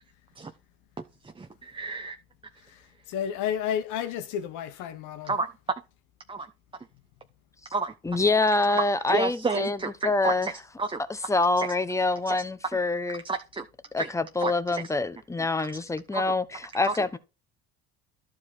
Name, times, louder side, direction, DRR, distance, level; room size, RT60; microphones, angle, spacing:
voice 1, 1.0-2.1 5.3-5.5 6.3-6.5 7.7-7.9 8.7-10.5 10.8-11.0 11.6-11.7 12.3-12.4 13.2-13.7 14.0-14.1 14.4-14.8 16.1-16.2 16.8-17.0, right 4 dB, 15° right, 0.9 m, -30 dB
voice 2, 2.6-5.4, left 9 dB, 70° left, 1.2 m, -32 dB
voice 3, 8.0-9.8 10.0-10.5 11.3-13.2 13.9-17.2, left 3 dB, 10° left, 1.0 m, -26 dB
12.0 x 4.8 x 4.4 m
supercardioid pair, 85°, 32 cm